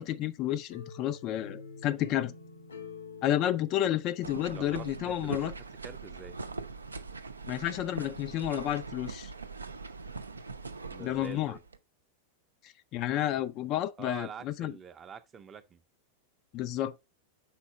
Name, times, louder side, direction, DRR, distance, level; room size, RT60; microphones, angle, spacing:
voice 1, 0.0-2.3 3.2-5.5 7.5-9.3 11.0-11.5 12.9-14.7 16.5-17.0, left 12 dB, 40° left, 0.4 m, -31 dB
sound 1, 0.7-5.6, left 5 dB, 75° left, 1.2 m, -48 dB
sound 2, 4.2-11.8, right 4 dB, 75° right, 0.5 m, -42 dB
voice 2, 4.5-5.5 5.8-6.4 10.9-11.6 14.0-15.8, right 6 dB, 25° right, 0.6 m, -45 dB
5.7 x 4.2 x 4.1 m
figure-of-eight pair, 90°, 0 cm